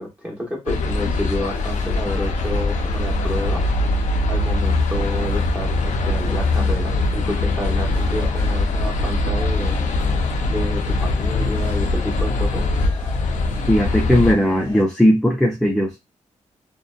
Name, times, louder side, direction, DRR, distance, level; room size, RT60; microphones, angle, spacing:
voice 1, 0.0-3.6 4.3-9.8 10.5-12.7, equal, 10° right, -1 dB, 1.1 m, -30 dB
sound 1, 0.7-14.3, left 2 dB, 75° left, 0.4 m, -22 dB
sound 2, 1.2-14.8, left 2 dB, 20° left, 0.9 m, -39 dB
voice 2, 13.7-16.0, equal, 5° left, 0 dB, 0.4 m, -17 dB
2.7 x 2.1 x 2.3 m, 0.21 s
wide cardioid pair, 135°, 13 cm